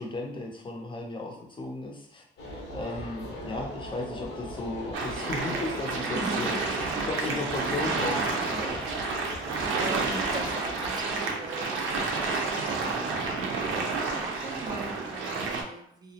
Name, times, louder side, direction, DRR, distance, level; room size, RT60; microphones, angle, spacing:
voice 1, 0.0-2.2 2.7-6.6 7.1-8.9, left 2 dB, 25° left, 1 dB, 0.6 m, -35 dB
sound 1, 2.4-11.0, left 1 dB, 60° left, 0.7 m, -40 dB
sound 2, 4.9-15.6, right 3 dB, 80° right, 0.5 m, -30 dB
voice 2, 6.2-7.1 9.4-13.2 13.5-16.1, right 2 dB, 20° right, 4 dB, 0.3 m, -40 dB
2.3 x 2.0 x 2.8 m, 0.71 s
cardioid pair, 90°, 20 cm